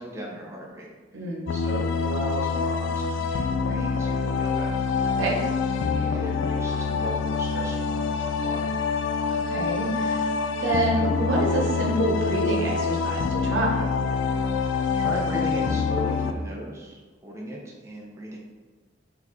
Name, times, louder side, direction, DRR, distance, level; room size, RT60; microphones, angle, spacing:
voice 1, 0.0-4.8 5.9-8.8 14.9-18.4, equal, 15° right, -3 dB, 0.5 m, -37 dB
voice 2, 1.1-1.5 5.0-5.4 9.3-10.3 10.6-13.7, right 2 dB, 75° right, -2 dB, 0.9 m, -27 dB
sound 1, 1.5-16.3, left 5 dB, 75° left, 0.3 m, -26 dB
4.0 x 3.4 x 3.0 m, 1.3 s
head